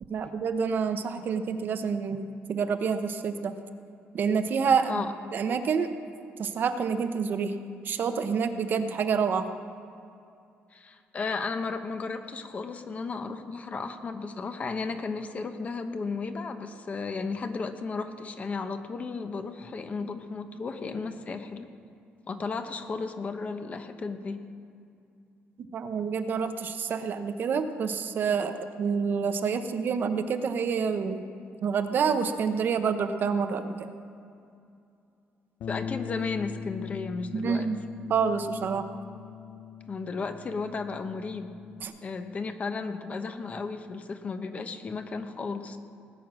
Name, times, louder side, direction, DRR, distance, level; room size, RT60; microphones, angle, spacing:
voice 1, 0.1-3.5 4.1-5.0 5.3-5.9 6.4-7.5 7.8-9.5 25.7-31.3 31.6-33.9 37.3-37.8 38.1-38.8 41.8-41.9, right 6 dB, 50° right, 8 dB, 0.9 m, -28 dB
voice 2, 10.7-21.7 22.3-24.4 35.7-37.7 39.9-41.5 42.0-45.8, left 4 dB, 35° left, 7 dB, 1.0 m, -34 dB
Bass guitar, 35.6-41.9, left 7 dB, 70° left, 0.8 m, -40 dB
19.0 x 9.0 x 6.3 m, 2.5 s
cardioid pair, 135°, 4 cm